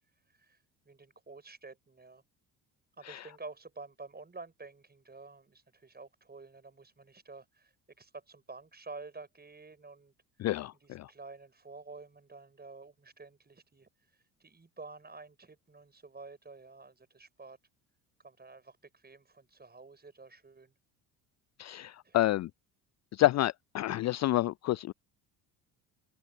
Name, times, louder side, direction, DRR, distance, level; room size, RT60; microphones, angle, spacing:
voice 1, 0.3-0.6 0.8-2.2 3.0-10.1 10.8-17.6 18.2-20.7 22.0-22.3, right 3 dB, 20° right, 6.0 m, -50 dB
voice 2, 10.4-11.1 21.6-22.5 23.1-24.9, left 15 dB, 35° left, 0.6 m, -29 dB
open air
figure-of-eight pair, 55°, 49 cm